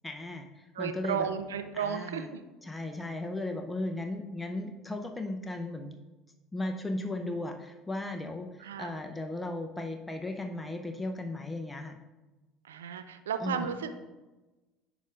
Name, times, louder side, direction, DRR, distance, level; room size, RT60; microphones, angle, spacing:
voice 1, 0.0-1.3 1.7-2.3 2.6-6.0 6.5-12.0 13.4-13.8, left 2 dB, 10° left, 4 dB, 0.6 m, -36 dB
voice 2, 0.8-2.4 8.6-8.9 12.6-13.9, right 7 dB, 80° right, 9 dB, 0.5 m, -34 dB
9.2 x 5.1 x 2.5 m, 1.1 s
hypercardioid pair, 65°, 0 cm